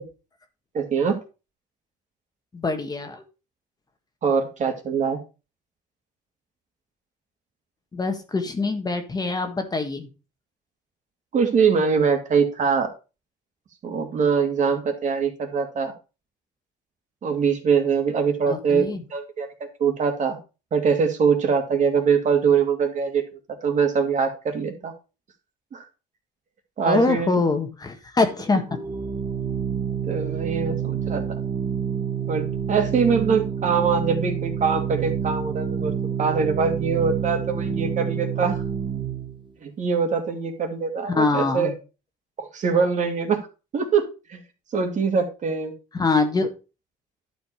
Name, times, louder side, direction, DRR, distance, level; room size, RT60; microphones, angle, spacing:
voice 1, 0.7-1.2 4.2-5.2 11.3-12.9 13.8-15.9 17.2-19.5 19.8-20.4 20.7-23.2 23.6-24.9 25.7-25.8 26.8-27.3 30.1-31.2 32.3-35.9 36.2-38.6 39.6-41.7 42.4-43.4 43.7-44.4 44.7-45.7, right 6 dB, 45° right, 4 dB, 2.4 m, -23 dB
voice 2, 2.5-3.2 7.9-10.1 18.5-19.0 26.9-28.6 41.1-41.7 45.9-46.5, left 3 dB, 25° left, 6 dB, 1.5 m, -24 dB
Organ, 28.7-39.4, right 7 dB, 30° right, 1.2 m, -28 dB
11.5 x 5.1 x 4.9 m, 0.31 s
cardioid pair, 110°, 17 cm